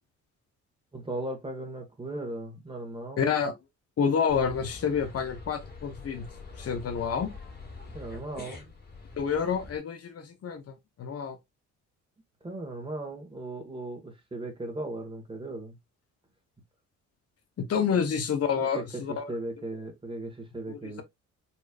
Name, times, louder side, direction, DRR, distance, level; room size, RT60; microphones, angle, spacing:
voice 1, 0.9-3.3 7.9-8.7 12.4-15.8 17.9-18.0 18.7-21.0, right 2 dB, 15° right, 1.6 m, -37 dB
voice 2, 3.2-3.5 4.0-6.3 6.6-7.3 9.2-11.4 17.6-19.3 20.7-21.0, left 6 dB, 50° left, 1.1 m, -28 dB
sound 1, 4.3-9.8, left 3 dB, 35° left, 1.9 m, -45 dB
4.3 x 3.1 x 2.4 m
cardioid pair, 90°, 30 cm